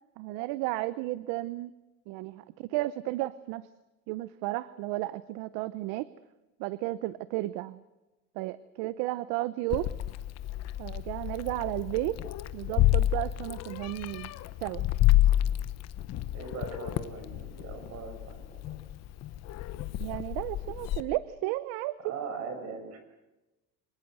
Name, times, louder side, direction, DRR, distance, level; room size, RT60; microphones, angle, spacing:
voice 1, 0.2-1.7 2.1-3.7 4.1-6.1 6.6-7.8 8.4-9.9 10.8-12.2 12.5-14.3 14.6-14.9 20.0-21.9, right 17 dB, 65° right, 17 dB, 0.8 m, -33 dB
Meow, 9.7-21.0, left 14 dB, 45° left, 1.2 m, -29 dB
voice 2, 16.3-18.8 22.0-23.0, right 5 dB, 45° right, 7 dB, 6.1 m, -40 dB
25.5 x 19.5 x 7.9 m, 1.0 s
cardioid pair, 140°, 38 cm